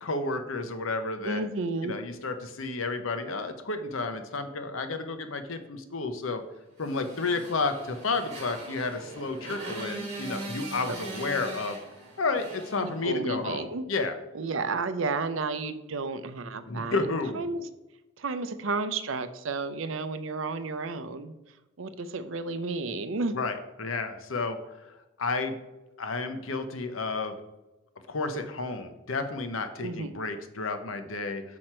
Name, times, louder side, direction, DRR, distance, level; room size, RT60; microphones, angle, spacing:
voice 1, 0.0-1.4 1.8-6.4 6.8-11.8 12.2-14.1 16.7-17.4 23.3-24.6 25.2-25.6 26.0-27.4 28.1-31.4, left 3 dB, 80° left, 8 dB, 0.8 m, -31 dB
voice 2, 1.2-2.0 12.8-13.8 14.3-17.1 17.4-17.7 18.2-21.3 21.8-23.3 29.8-30.1, right 3 dB, 75° right, 11 dB, 0.6 m, -32 dB
Motorcycle, 6.8-13.5, right 2 dB, 35° right, 2.8 m, -41 dB
6.4 x 6.0 x 4.4 m, 1.0 s
head